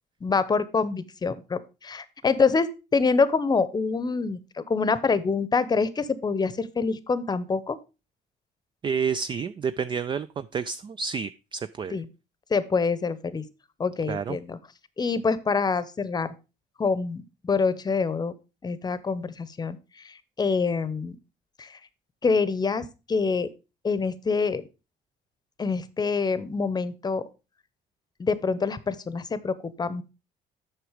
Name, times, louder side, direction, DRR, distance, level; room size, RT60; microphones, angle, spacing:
voice 1, 0.2-7.8 11.9-12.1 12.5-13.4 13.8-14.6 15.0-16.3 16.8-18.3 18.6-21.2 21.6-21.8 22.2-23.5 23.8-24.6 25.6-27.2 28.2-30.0, left 4 dB, 25° left, 0.8 m, -26 dB
voice 2, 8.8-12.0 14.1-14.4, right 6 dB, 30° right, 0.3 m, -30 dB
7.9 x 6.1 x 4.9 m
cardioid pair, 110°, 17 cm